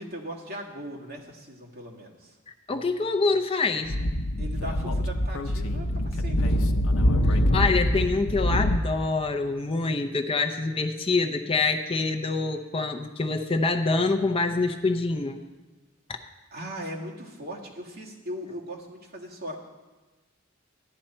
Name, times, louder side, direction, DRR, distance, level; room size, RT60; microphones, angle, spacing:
voice 1, 0.0-2.4 4.4-6.7 16.5-19.6, equal, 50° right, -3 dB, 2.0 m, -39 dB
voice 2, 2.5-3.9 7.3-15.4 16.1-16.2, left 3 dB, 25° left, 5 dB, 0.5 m, -26 dB
Speech / Wind, 3.8-8.8, left 1 dB, 80° left, 0.7 m, -24 dB
14.0 x 10.5 x 4.4 m, 1.2 s
head